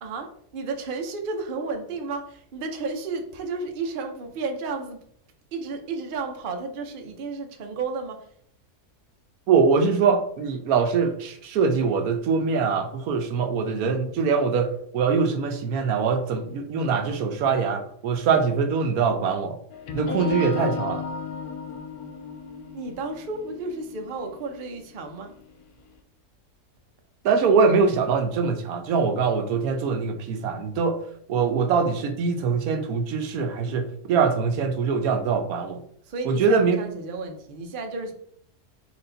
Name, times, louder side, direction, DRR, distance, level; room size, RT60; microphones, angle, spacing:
voice 1, 0.0-5.0 5.5-8.3 22.7-25.3 36.0-38.1, right 3 dB, 55° right, 4 dB, 0.6 m, -32 dB
voice 2, 9.5-19.6 19.9-21.0 27.2-31.0 31.3-35.8 36.3-36.8, right 5 dB, 75° right, 6 dB, 1.0 m, -23 dB
sound 1, 19.7-25.6, left 5 dB, 75° left, 1.0 m, -34 dB
4.4 x 2.9 x 3.8 m, 0.65 s
omnidirectional pair, 1.7 m